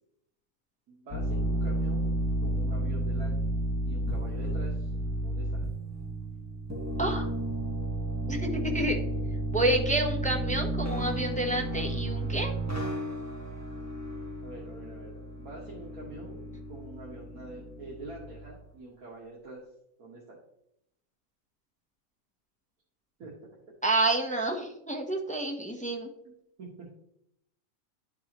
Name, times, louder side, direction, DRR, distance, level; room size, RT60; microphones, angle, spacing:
voice 1, 0.9-3.4 3.8-4.9 5.2-5.6 14.4-19.6 20.0-20.4 23.2-23.3 26.6-26.9, right 2 dB, 85° right, -4 dB, 1.8 m, -45 dB
sound 1, 1.1-18.5, right 1 dB, 10° right, 1.4 m, -32 dB
voice 2, 7.0-7.3 8.3-9.0 9.5-12.5 23.8-26.1, right 1 dB, 10° left, 2 dB, 0.6 m, -29 dB
11.0 x 4.6 x 2.9 m, 0.77 s
omnidirectional pair, 1.5 m